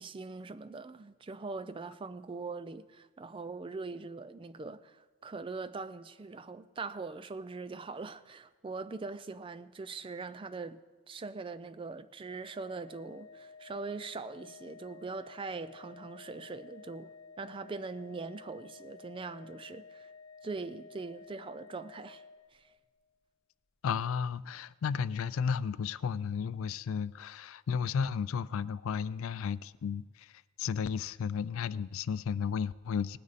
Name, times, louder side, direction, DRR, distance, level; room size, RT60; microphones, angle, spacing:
voice 1, 0.0-10.8 11.1-17.1 17.4-20.1 20.4-22.2 22.5-22.7, right 4 dB, 25° right, 0.3 m, -42 dB
Organ, 12.3-23.0, left 4 dB, 50° left, 2.1 m, -53 dB
voice 2, 23.8-30.3 30.6-33.2, left 6 dB, 70° left, 0.3 m, -33 dB
19.0 x 9.6 x 4.1 m
head